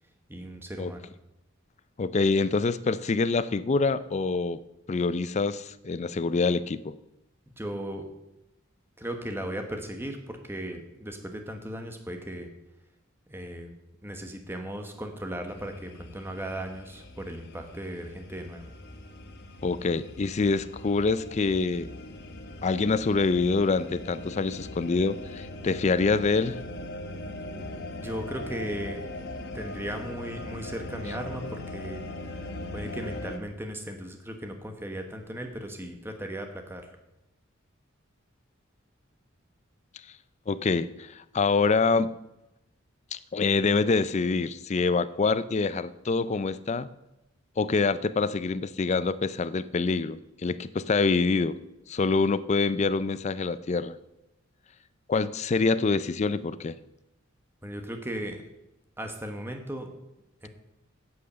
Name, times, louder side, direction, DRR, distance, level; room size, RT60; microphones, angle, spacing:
voice 1, 0.3-1.0 7.6-8.1 9.0-12.5 13.3-13.7 14.0-18.7 27.9-29.0 29.5-32.0 32.7-36.9 57.6-58.4 59.0-59.9 60.4-60.5, right 1 dB, 10° right, 5 dB, 1.1 m, -36 dB
voice 2, 2.0-4.6 4.9-7.0 19.6-21.9 22.6-26.6 40.5-42.1 43.1-46.9 47.6-51.6 51.9-54.0 55.1-56.8, left 4 dB, 35° left, 15 dB, 0.4 m, -26 dB
sound 1, 15.5-33.4, left 2 dB, 55° left, 1.0 m, -40 dB
8.5 x 7.7 x 6.8 m, 0.90 s
head